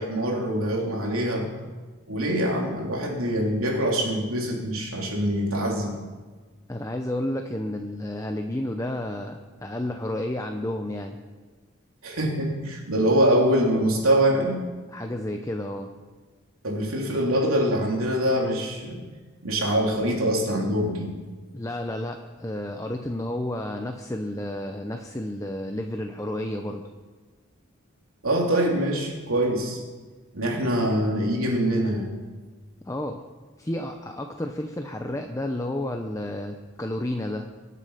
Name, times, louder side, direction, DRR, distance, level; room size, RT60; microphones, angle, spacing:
voice 1, 0.0-1.5 2.1-5.9 12.0-14.6 16.6-19.0 19.4-21.1 28.2-29.8 30.3-32.1, right 1 dB, 85° right, 0 dB, 3.3 m, -24 dB
voice 2, 6.7-11.2 14.9-15.9 21.5-26.8 32.9-33.2 33.6-37.5, left 1 dB, 15° left, 4 dB, 0.7 m, -31 dB
24.0 x 8.4 x 5.7 m, 1.4 s
head